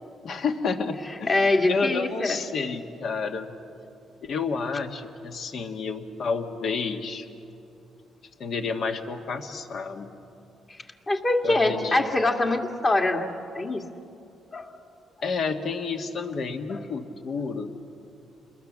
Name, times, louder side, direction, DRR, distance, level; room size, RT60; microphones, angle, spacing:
voice 1, 0.2-3.5 4.2-7.3 8.4-10.2 11.4-12.0 15.2-17.7, left 4 dB, 60° left, 6 dB, 1.6 m, -30 dB
voice 2, 1.3-2.4 11.1-13.8 14.5-14.7 16.7-16.8, left 2 dB, 35° left, 2 dB, 2.3 m, -24 dB
29.0 x 21.5 x 7.4 m, 2.7 s
cardioid pair, 90°, 0 cm